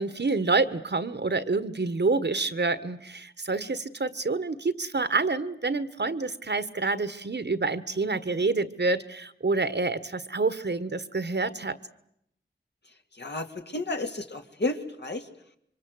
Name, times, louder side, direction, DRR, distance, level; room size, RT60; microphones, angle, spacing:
voice 1, 0.0-11.8, right 3 dB, 65° right, 13 dB, 1.4 m, -27 dB
voice 2, 13.2-15.3, left 2 dB, 65° left, 4 dB, 2.5 m, -32 dB
27.0 x 24.5 x 8.0 m, 0.74 s
wide cardioid pair, 50°, 19 cm